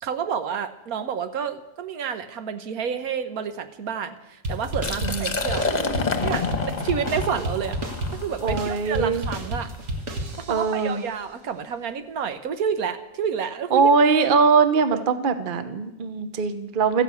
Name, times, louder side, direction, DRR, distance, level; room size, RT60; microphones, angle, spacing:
voice 1, 0.0-5.7 6.2-7.8 8.2-9.7 10.5-13.9 14.9-15.0, right 7 dB, 80° right, 9 dB, 1.4 m, -29 dB
sound 1, 4.4-10.8, right 1 dB, 60° right, 2.0 m, -31 dB
Liquid, 4.7-10.5, left 4 dB, 30° left, 1.2 m, -29 dB
voice 2, 8.4-9.2 10.5-11.0 13.7-17.0, right 5 dB, 40° right, 10 dB, 1.0 m, -21 dB
13.5 x 10.5 x 8.3 m, 0.94 s
omnidirectional pair, 1.5 m